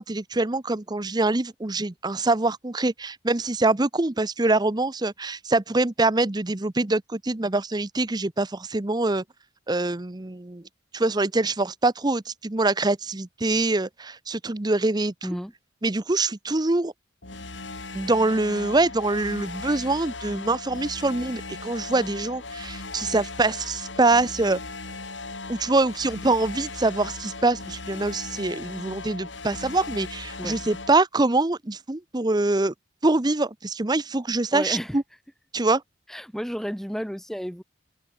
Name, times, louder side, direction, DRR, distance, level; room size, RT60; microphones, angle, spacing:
voice 1, 0.0-9.2 9.7-10.6 10.9-15.1 15.8-16.9 17.9-24.6 25.5-32.7 33.0-35.0 35.5-35.8, right 2 dB, 20° right, 0.8 m, -24 dB
sound 1, 17.2-30.9, left 3 dB, 80° left, 7.2 m, -37 dB
voice 2, 34.5-35.0 36.1-37.6, equal, ahead, 4.9 m, -32 dB
head